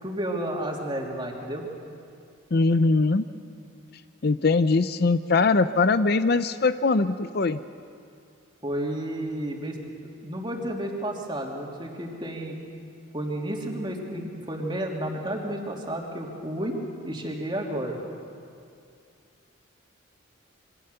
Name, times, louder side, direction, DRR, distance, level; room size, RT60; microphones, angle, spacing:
voice 1, 0.0-1.7 8.6-9.8 10.2-12.6 13.1-16.7 17.0-18.0, right 1 dB, 25° right, -1 dB, 3.0 m, -31 dB
voice 2, 2.5-3.2 4.2-7.6, left 3 dB, 50° left, 12 dB, 0.6 m, -21 dB
27.0 x 23.5 x 6.9 m, 2.4 s
head